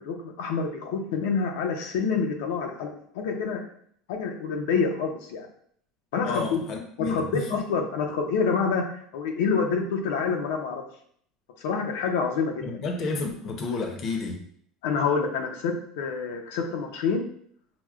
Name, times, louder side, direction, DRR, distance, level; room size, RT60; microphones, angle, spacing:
voice 1, 0.0-3.6 4.1-5.5 6.1-6.6 7.1-8.8 9.1-10.8 11.6-12.8 14.8-17.2, left 5 dB, 85° left, 3 dB, 0.6 m, -27 dB
voice 2, 6.2-7.6 12.6-14.4, left 3 dB, 40° left, 3 dB, 0.6 m, -31 dB
5.9 x 2.1 x 2.3 m, 0.62 s
cardioid pair, 160°, 0 cm